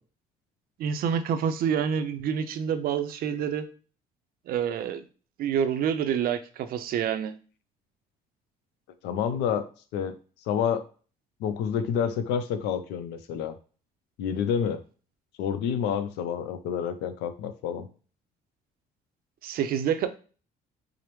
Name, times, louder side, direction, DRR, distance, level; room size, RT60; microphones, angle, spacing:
voice 1, 0.8-3.7 4.5-5.0 5.4-7.3 19.4-20.1, right 8 dB, 60° right, 10 dB, 0.5 m, -27 dB
voice 2, 9.0-9.6 9.9-10.1 10.5-10.8 11.4-13.5 14.2-14.8 15.4-17.9, left 8 dB, 85° left, 10 dB, 0.5 m, -28 dB
4.8 x 2.0 x 3.0 m, 0.38 s
cardioid pair, 110°, 17 cm